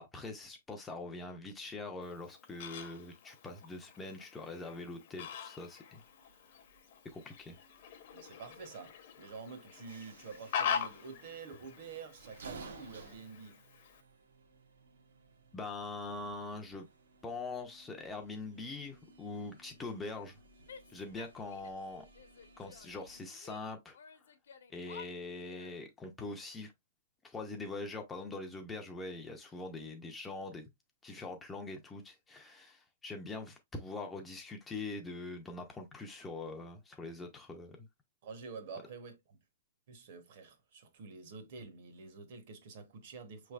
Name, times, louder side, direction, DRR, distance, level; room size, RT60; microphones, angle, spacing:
voice 1, 0.0-6.0 7.1-7.6 15.5-16.9 17.2-20.4 20.9-22.1 22.6-24.0 24.7-26.7 27.2-30.7 31.0-37.8, left 3 dB, 10° left, 0.5 m, -43 dB
Fowl, 2.0-14.0, left 8 dB, 45° left, 0.7 m, -43 dB
sound 1, 5.9-23.2, right 4 dB, 75° right, 1.0 m, -57 dB
voice 2, 8.1-13.6 38.2-39.4 39.9-43.5, right 5 dB, 45° right, 0.9 m, -48 dB
Female speech woman speaking / Yell, 20.7-21.9 22.1-23.6 23.9-25.8, left 6 dB, 85° left, 0.9 m, -53 dB
5.0 x 3.2 x 2.3 m
hypercardioid pair, 170°, 0 cm